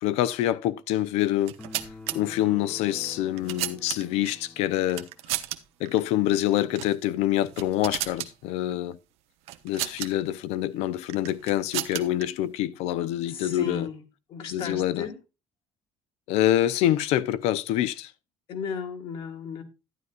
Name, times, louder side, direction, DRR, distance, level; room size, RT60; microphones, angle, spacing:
voice 1, 0.0-1.5 2.1-5.1 5.8-9.0 9.6-13.9 14.5-15.1 16.3-18.1, left 13 dB, 85° left, 0.6 m, -26 dB
sound 1, 1.4-2.2 3.0-4.3 4.9-5.6 5.9-6.0 6.7-7.0 7.3-8.3 9.5-10.1 11.1-12.2, right 15 dB, 85° right, 0.8 m, -33 dB
sound 2, 1.6-5.1, left 2 dB, 10° left, 0.6 m, -45 dB
voice 2, 13.3-14.0 14.3-15.2 18.5-19.6, left 6 dB, 55° left, 1.9 m, -34 dB
12.0 x 9.6 x 2.4 m
cardioid pair, 140°, 10 cm